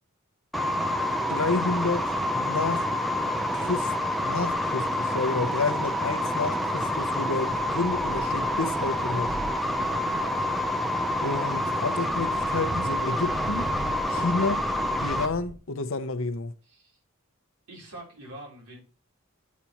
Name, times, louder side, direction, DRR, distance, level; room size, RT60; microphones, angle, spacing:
sound 1, 0.5-15.3, left 1 dB, ahead, 0.4 m, -27 dB
voice 1, 1.3-2.9 3.5-3.9 4.2-9.3 11.2-13.7 14.2-14.6 15.0-16.5, left 3 dB, 65° left, 0.7 m, -30 dB
sound 2, 7.4-15.6, equal, 65° right, 3.0 m, -41 dB
voice 2, 9.7-10.5 14.1-14.3 16.6-17.0 17.7-18.8, right 1 dB, 90° right, 3.7 m, -44 dB
8.3 x 7.4 x 2.9 m
head